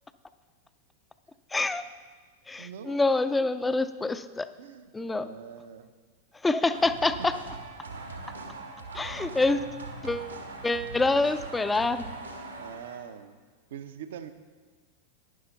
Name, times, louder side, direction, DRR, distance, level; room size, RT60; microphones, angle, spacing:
voice 1, 1.5-1.8 2.5-4.5 4.9-5.3 6.4-7.4 8.9-9.6 10.0-10.3 10.6-12.2, left 3 dB, 10° left, 13 dB, 0.5 m, -26 dB
voice 2, 2.6-3.0 4.6-5.9 7.2-7.3 12.6-13.4 13.7-14.3, right 8 dB, 60° right, 10 dB, 0.7 m, -43 dB
sound 1, 6.6-13.1, right 3 dB, 75° right, 1.4 m, -41 dB
11.5 x 10.0 x 4.0 m, 1.5 s
figure-of-eight pair, 90°, 0 cm